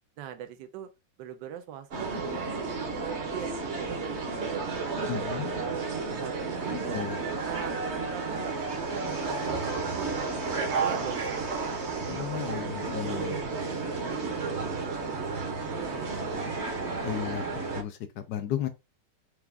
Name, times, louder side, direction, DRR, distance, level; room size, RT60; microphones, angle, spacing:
voice 1, 0.2-0.9 1.2-2.5 3.0-5.9 6.2-11.8 12.2-12.6 12.9-16.6, right 10 dB, 80° right, 1.2 m, -42 dB
sound 1, 1.9-17.8, right 4 dB, 45° right, 1.0 m, -32 dB
voice 2, 5.1-5.5 6.9-7.2 12.1-13.4 17.0-18.7, left 10 dB, 80° left, 1.2 m, -34 dB
4.7 x 2.4 x 3.2 m
omnidirectional pair, 1.9 m